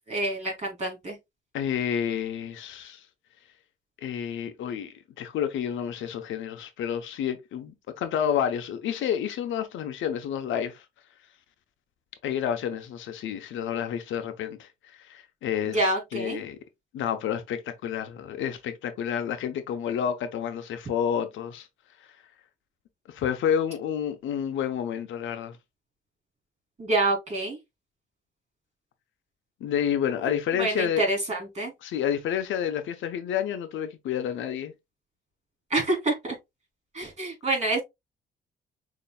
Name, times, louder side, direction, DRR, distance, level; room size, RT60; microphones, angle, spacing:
voice 1, 0.1-1.2 15.6-16.4 26.8-27.6 30.6-31.7 35.7-36.4 36.9-37.8, right 2 dB, 35° right, 3.1 m, -27 dB
voice 2, 1.5-3.0 4.0-10.8 12.2-14.7 15.0-16.6 16.9-21.7 23.1-25.6 29.6-31.0 31.8-34.7, left 9 dB, 80° left, 0.8 m, -29 dB
6.9 x 2.9 x 2.3 m
cardioid pair, 90°, 20 cm